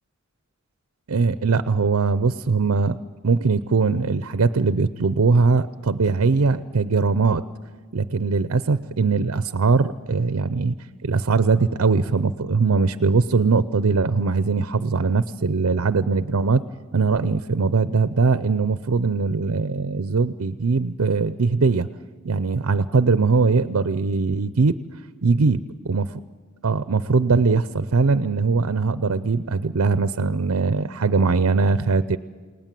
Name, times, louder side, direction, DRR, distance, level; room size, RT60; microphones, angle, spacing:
voice 1, 1.1-3.0 3.2-7.4 7.9-10.7 11.0-16.6 16.9-21.9 22.2-24.8 25.2-25.6 25.9-26.0 26.6-32.2, right 4 dB, 65° right, 13 dB, 0.6 m, -21 dB
29.0 x 18.5 x 7.5 m, 1.5 s
head